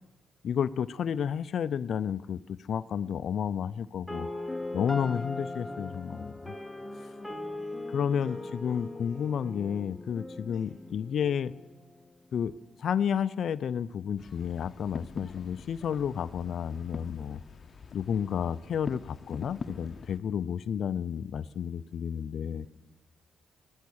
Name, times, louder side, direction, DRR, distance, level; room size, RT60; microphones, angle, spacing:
voice 1, 0.4-4.3 4.7-6.3 7.9-11.5 12.3-12.5 12.8-17.4 17.9-22.7, left 8 dB, 60° left, 0.4 m, -31 dB
sound 1, 4.1-12.1, left 2 dB, 5° left, 1.0 m, -39 dB
voice 2, 7.1-9.3 10.5-10.8, equal, 65° right, 5.5 m, -55 dB
sound 2, 14.2-20.2, left 4 dB, 40° left, 0.8 m, -44 dB
16.0 x 13.5 x 6.3 m
cardioid pair, 90°, 0 cm